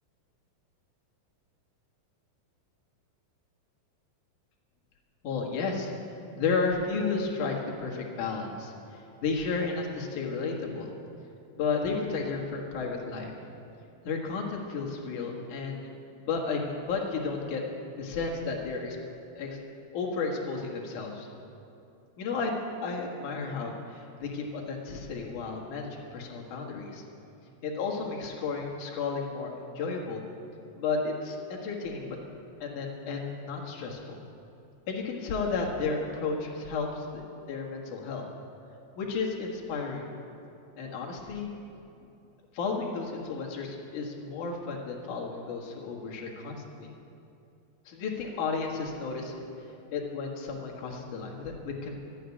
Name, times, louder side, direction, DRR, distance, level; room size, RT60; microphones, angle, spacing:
voice 1, 5.2-5.9 6.4-10.9 11.5-13.3 14.0-15.9 16.2-17.6 18.0-19.0 19.4-19.6 19.9-21.3 22.2-27.0 27.6-30.2 30.7-32.2 32.6-34.2 34.9-37.2 37.5-38.2 39.0-40.1 40.8-41.5 42.5-46.9 47.9-51.9, left 4 dB, 60° left, -1 dB, 2.9 m, -33 dB
12.0 x 9.1 x 9.9 m, 2.7 s
omnidirectional pair, 4.2 m